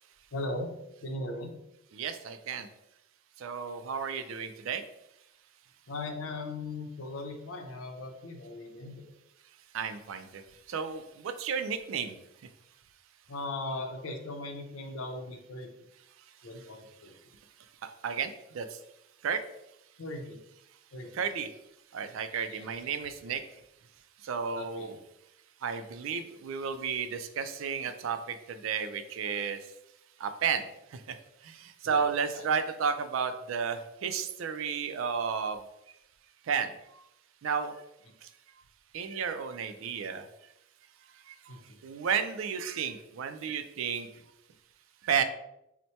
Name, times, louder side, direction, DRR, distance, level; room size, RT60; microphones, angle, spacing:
voice 1, 0.3-0.7 1.0-1.5 5.9-8.9 13.3-15.7 16.4-17.1 20.0-20.4 20.9-21.1 22.5-22.6 24.6-25.0 31.8-32.0 32.3-32.4 41.5-41.8, left 2 dB, 90° left, 4 dB, 0.6 m, -38 dB
voice 2, 1.9-2.7 3.4-4.8 9.7-12.2 16.6-16.7 17.0-17.1 17.8-18.8 19.2-19.4 21.1-21.5 21.9-23.6 24.2-25.0 25.6-29.7 30.2-35.6 36.4-37.1 37.4-37.8 38.2-38.3 38.9-40.5 41.1-44.2 45.0-45.2, right 6 dB, 80° right, 9 dB, 0.4 m, -33 dB
4.4 x 2.1 x 2.7 m, 0.84 s
head